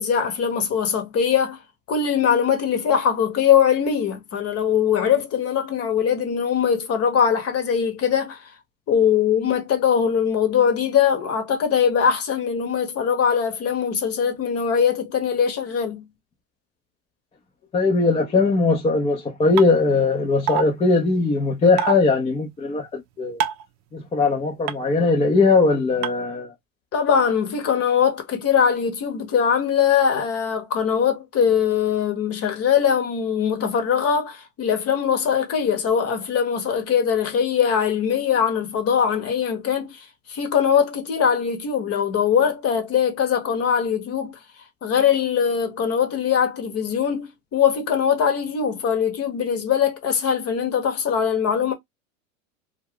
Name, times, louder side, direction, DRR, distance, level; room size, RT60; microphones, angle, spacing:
voice 1, 0.0-1.6 1.9-8.4 8.9-16.0 26.9-44.4 44.8-51.7, left 7 dB, 35° left, 1.0 m, -21 dB
voice 2, 17.7-23.4 23.9-26.5, left 3 dB, 15° left, 0.6 m, -20 dB
sound 1, 19.6-19.7 20.5-20.6 21.8-21.9 23.4-23.7 24.7-24.8 26.0-26.1, right 9 dB, 40° right, 0.6 m, -23 dB
2.4 x 2.2 x 3.5 m
hypercardioid pair, 100°, 42 cm